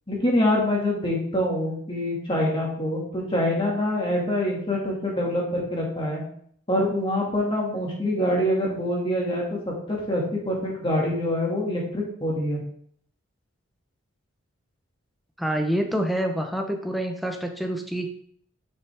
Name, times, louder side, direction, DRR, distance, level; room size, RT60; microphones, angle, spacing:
voice 1, 0.1-6.2 6.7-12.6, left 1 dB, 25° left, -2 dB, 2.1 m, -25 dB
voice 2, 15.4-18.1, equal, ahead, 3 dB, 0.8 m, -27 dB
9.3 x 5.8 x 3.5 m, 0.63 s
head